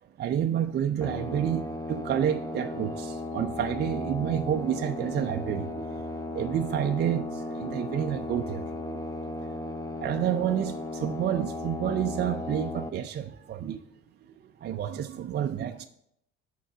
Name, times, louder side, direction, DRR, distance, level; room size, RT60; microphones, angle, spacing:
voice 1, 0.2-6.0 6.3-9.0 9.6-13.8 14.4-15.9, right 10 dB, 35° right, 0.4 m, -29 dB
sound 1, 1.0-12.9, left 2 dB, 10° left, 0.6 m, -35 dB
6.5 x 4.5 x 6.5 m
supercardioid pair, 85°, 30 cm